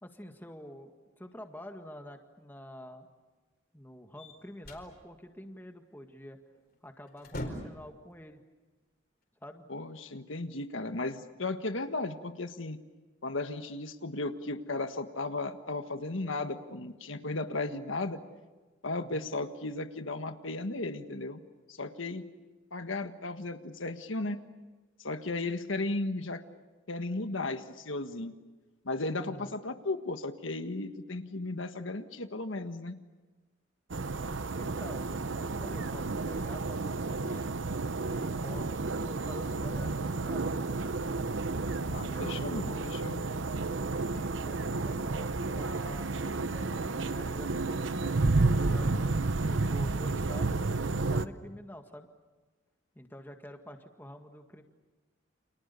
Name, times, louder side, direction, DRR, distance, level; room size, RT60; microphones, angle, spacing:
voice 1, 0.0-3.1 3.7-6.4 6.8-8.4 9.4-9.7 19.0-19.3 29.2-29.5 34.5-37.5 38.1-40.7 42.1-43.0 44.1-48.1 48.5-48.9 49.4-52.1 52.9-54.6, equal, 10° left, 5 dB, 1.8 m, -48 dB
sound 1, 4.2-4.9 6.6-6.7 7.1-7.9, left 1 dB, 50° left, 4.6 m, -40 dB
voice 2, 9.7-12.8 13.2-18.2 18.8-21.4 21.7-22.2 22.7-24.4 25.0-26.4 26.9-28.3 28.8-33.0 41.9-43.2, left 2 dB, 85° left, 8 dB, 1.5 m, -35 dB
sound 2, 33.9-51.3, right 3 dB, 75° right, 0.8 m, -31 dB
30.0 x 28.0 x 7.0 m, 1.2 s
head